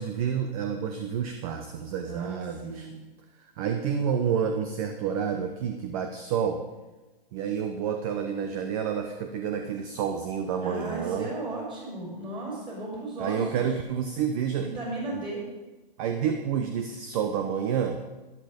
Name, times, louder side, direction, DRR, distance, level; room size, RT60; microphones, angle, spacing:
voice 1, 0.0-2.9 3.6-6.6 7.3-11.3 13.2-14.7 15.1-15.2 16.0-18.0, right 7 dB, 35° right, 6 dB, 1.0 m, -29 dB
voice 2, 2.1-2.9 10.6-13.7 14.6-15.4, right 2 dB, 15° right, -3 dB, 5.5 m, -35 dB
13.5 x 11.0 x 5.2 m, 1.1 s
hypercardioid pair, 150°, 29 cm